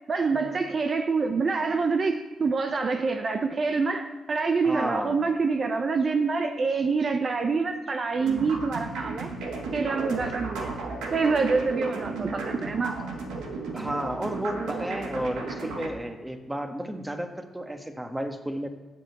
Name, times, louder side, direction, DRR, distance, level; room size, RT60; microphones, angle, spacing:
voice 1, 0.1-9.3 9.7-10.8 11.1-13.0 14.6-15.0, right 4 dB, 50° right, 7 dB, 0.7 m, -26 dB
voice 2, 4.6-5.2 13.7-18.7, right 1 dB, 15° right, 6 dB, 1.5 m, -32 dB
sound 1, 8.2-15.9, right 3 dB, 85° right, 1.5 m, -34 dB
7.9 x 7.5 x 7.1 m, 1.3 s
supercardioid pair, 45°, 0 cm